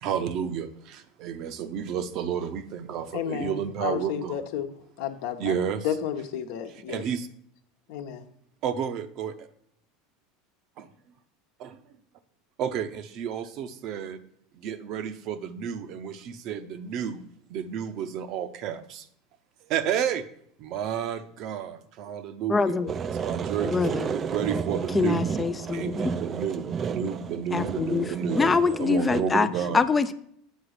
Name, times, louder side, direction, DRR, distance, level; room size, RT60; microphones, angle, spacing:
voice 1, 0.0-4.4 5.4-5.9 6.9-7.3 8.6-9.5 10.8-10.9 11.6-11.8 12.6-14.2 14.5-17.2 17.5-19.1 19.6-20.3 20.6-22.8 23.1-25.2 25.7-28.4 28.8-29.8, right 8 dB, 50° right, 11 dB, 0.8 m, -31 dB
voice 2, 3.1-4.7 5.0-5.6 5.8-7.0 7.9-8.2, left 9 dB, 65° left, 7 dB, 1.0 m, -32 dB
voice 3, 22.5-22.9 23.6-24.1 24.9-26.1 27.5-28.1 28.3-29.5 29.7-30.1, left 4 dB, 20° left, 11 dB, 0.5 m, -24 dB
sound 1, 22.9-29.2, right 7 dB, 35° right, 0.5 m, -32 dB
8.3 x 4.8 x 6.5 m, 0.68 s
hypercardioid pair, 80°, 0 cm